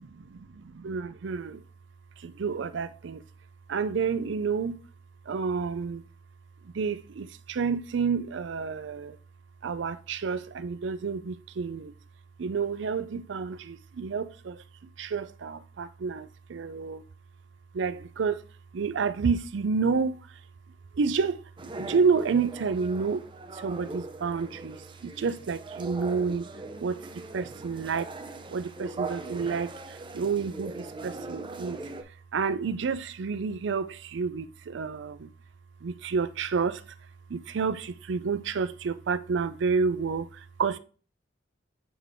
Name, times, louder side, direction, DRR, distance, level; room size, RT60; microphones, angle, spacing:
voice 1, 0.5-1.6 2.2-3.2 3.7-4.8 5.3-6.0 6.7-9.2 9.6-11.9 12.4-14.6 15.0-17.0 17.7-18.4 18.7-20.2 20.9-21.4 21.7-23.2 23.5-26.5 26.8-28.1 28.5-31.8 32.3-35.3 35.8-36.8 37.3-40.8, right 5 dB, 70° right, 0.4 m, -29 dB
sound 1, 21.6-32.0, right 2 dB, 25° right, 0.6 m, -40 dB
8.4 x 3.7 x 3.5 m
head